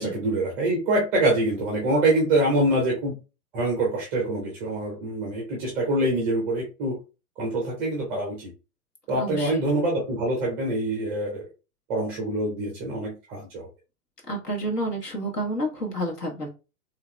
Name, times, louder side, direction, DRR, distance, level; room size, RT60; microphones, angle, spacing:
voice 1, 0.0-3.1 3.5-7.0 7.4-8.5 9.1-11.4 11.9-13.7, right 1 dB, 5° right, -1 dB, 0.3 m, -25 dB
voice 2, 9.1-9.6 14.3-16.5, right 1 dB, 85° left, 1 dB, 1.3 m, -29 dB
3.8 x 2.8 x 2.2 m, 0.30 s
figure-of-eight pair, 105°, 46 cm